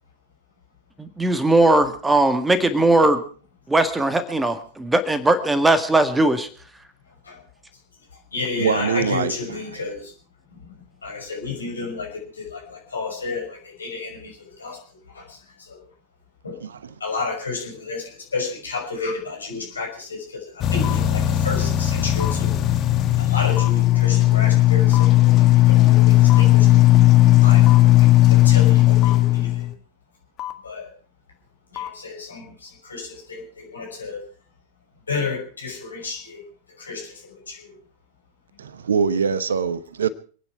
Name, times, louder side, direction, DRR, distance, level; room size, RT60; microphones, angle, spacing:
voice 1, 1.0-3.2 3.7-6.5, right 2 dB, 10° right, 10 dB, 1.8 m, -19 dB
voice 2, 7.1-7.5 8.1-10.1 10.5-15.9 16.4-16.6 17.0-22.6 23.2-26.9 27.4-29.7 30.6-30.9 31.7-34.2 35.1-36.4 36.7-37.8, left 4 dB, 75° left, 1 dB, 5.7 m, -32 dB
voice 3, 8.6-9.3 16.6-16.7 38.6-40.1, right 6 dB, 65° right, 17 dB, 1.0 m, -23 dB
sound 1, 20.6-29.7 30.4-30.5 31.8-31.9, left 15 dB, 35° left, 1.6 m, -16 dB
27.0 x 9.8 x 4.6 m, 0.41 s
figure-of-eight pair, 90°, 0 cm